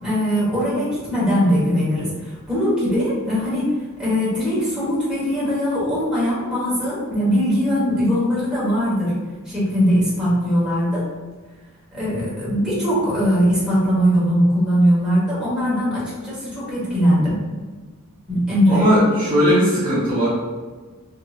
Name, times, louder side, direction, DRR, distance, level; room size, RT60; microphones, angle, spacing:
voice 1, 0.0-9.2 9.5-11.1 11.9-17.4 18.3-18.8, equal, 5° right, -9 dB, 1.1 m, -20 dB
voice 2, 18.7-20.3, equal, 25° right, -10 dB, 0.7 m, -18 dB
2.8 x 2.7 x 2.3 m, 1.3 s
head